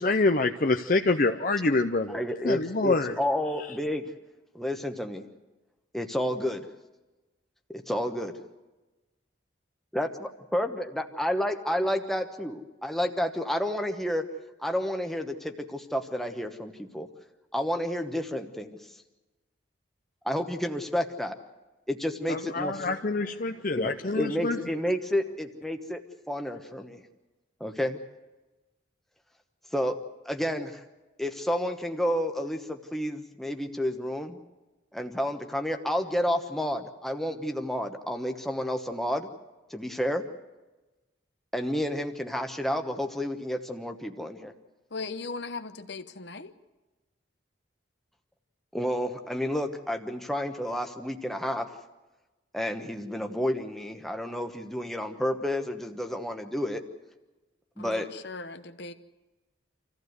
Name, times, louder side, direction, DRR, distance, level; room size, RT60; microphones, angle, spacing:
voice 1, 0.0-3.2 22.3-24.6, left 3 dB, 45° left, 6 dB, 0.6 m, -26 dB
voice 2, 2.1-4.1 4.5-5.2 5.9-6.7 7.7-8.4 9.9-14.3 14.6-17.1 17.5-18.8 20.2-21.4 21.9-22.8 23.8-27.0 27.6-28.0 29.7-30.0 30.2-30.8 31.2-34.4 34.9-39.3 39.7-40.3 41.5-44.5 48.7-51.7 52.5-56.8 57.8-58.1, equal, ahead, 5 dB, 1.1 m, -30 dB
voice 3, 44.9-46.6 57.8-58.9, left 3 dB, 60° left, 10 dB, 1.0 m, -38 dB
26.5 x 15.0 x 8.0 m, 1.1 s
head